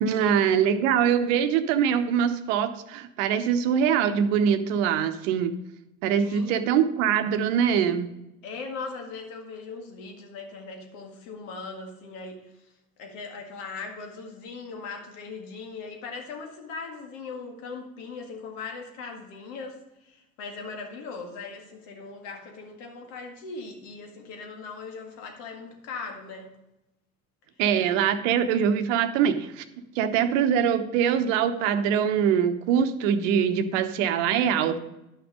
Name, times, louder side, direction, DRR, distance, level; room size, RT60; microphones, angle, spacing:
voice 1, 0.0-5.6 6.0-8.1 27.6-29.6 30.0-34.8, right 8 dB, 60° right, 10 dB, 1.0 m, -23 dB
voice 2, 6.1-6.7 8.4-12.7 13.0-26.5, left 4 dB, 60° left, 3 dB, 2.1 m, -39 dB
11.5 x 6.0 x 5.2 m, 0.92 s
figure-of-eight pair, 70°, 42 cm